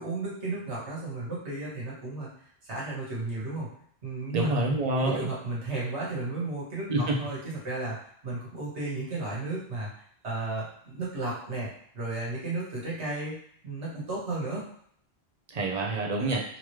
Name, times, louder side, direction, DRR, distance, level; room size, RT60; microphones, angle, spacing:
voice 1, 0.0-2.3 2.7-3.7 4.0-4.5 4.9-8.0 8.2-9.9 10.2-11.7 11.9-13.4 13.6-14.7, right 2 dB, 85° right, -6 dB, 1.7 m, -33 dB
voice 2, 4.3-5.3 6.9-7.2 15.5-16.4, right 2 dB, 40° right, -1 dB, 0.8 m, -27 dB
3.7 x 3.1 x 3.1 m, 0.63 s
omnidirectional pair, 1.1 m